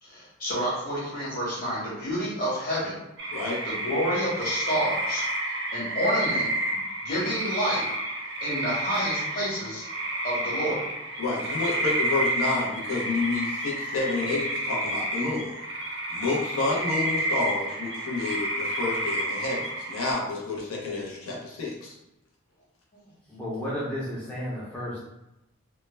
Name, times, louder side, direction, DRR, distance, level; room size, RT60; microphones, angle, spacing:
voice 1, 0.0-3.0 3.6-5.2 5.7-7.9 8.4-9.8 10.2-10.8, equal, 45° left, -8 dB, 1.2 m, -29 dB
sound 1, 3.2-20.1, right 1 dB, 60° right, 0.5 m, -30 dB
voice 2, 3.3-3.6 11.2-15.6 16.1-22.0, left 3 dB, 90° left, -3 dB, 0.6 m, -29 dB
voice 3, 23.3-25.0, equal, 5° left, -8 dB, 0.4 m, -32 dB
2.2 x 2.0 x 3.1 m, 0.92 s
head